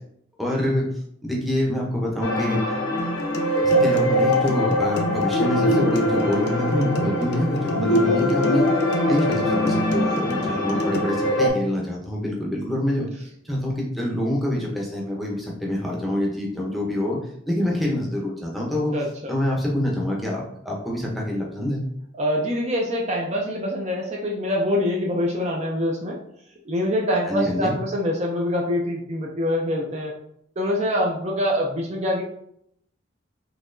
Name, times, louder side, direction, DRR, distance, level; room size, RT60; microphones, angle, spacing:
voice 1, 0.4-0.9 1.2-2.6 3.6-8.7 9.1-13.1 13.4-17.2 17.5-18.9 19.3-21.8 27.3-27.7, left 1 dB, ahead, -3 dB, 0.7 m, -25 dB
sound 1, 2.2-11.5, left 1 dB, 85° left, 1.0 m, -22 dB
sound 2, 3.0-11.0, right 1 dB, 60° left, 0.5 m, -32 dB
voice 2, 10.5-10.9 18.9-19.1 22.2-26.2 26.7-30.1 30.6-32.2, left 1 dB, 35° right, -1 dB, 0.5 m, -25 dB
4.0 x 2.8 x 2.6 m, 0.71 s
head